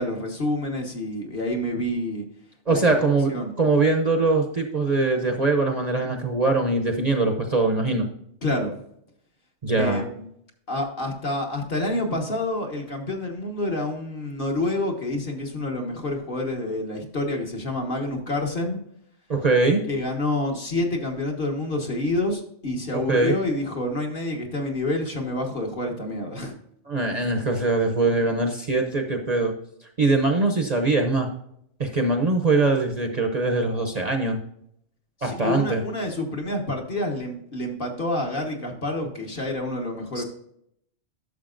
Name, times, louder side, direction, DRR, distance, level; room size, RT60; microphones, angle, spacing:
voice 1, 0.0-2.2 2.7-2.8 3.3-3.5 8.4-8.8 9.8-10.3 10.7-18.8 19.9-26.5 35.2-40.2, left 1 dB, 45° left, 1 dB, 1.5 m, -28 dB
voice 2, 2.7-8.1 9.6-10.0 19.3-19.9 22.9-23.4 26.9-29.5 30.0-31.3 31.8-34.4 35.2-35.8 40.1-40.2, right 3 dB, 40° right, 4 dB, 0.8 m, -22 dB
11.0 x 6.7 x 2.5 m, 0.72 s
omnidirectional pair, 1.2 m